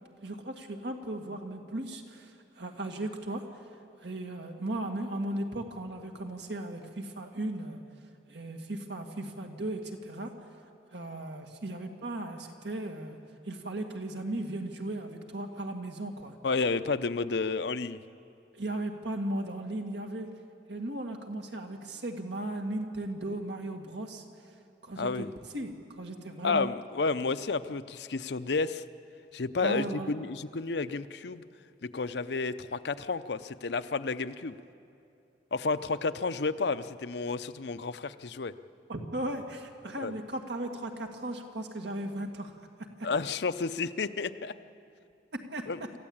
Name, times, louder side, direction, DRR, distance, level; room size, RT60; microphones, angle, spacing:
voice 1, 0.2-3.4 4.0-7.8 8.3-10.3 10.9-13.2 13.4-16.4 18.5-20.3 20.7-24.2 24.8-25.3 25.5-26.7 29.6-30.1 38.9-42.5 43.0-43.1 45.3-45.7, right 1 dB, 75° right, 4 dB, 2.0 m, -36 dB
voice 2, 16.4-18.0 25.0-25.3 26.4-28.8 29.3-31.4 31.8-34.6 35.5-38.5 40.0-40.2 43.0-44.5 45.7-45.8, left 4 dB, 70° left, 12 dB, 0.6 m, -31 dB
26.0 x 14.5 x 8.7 m, 2.6 s
head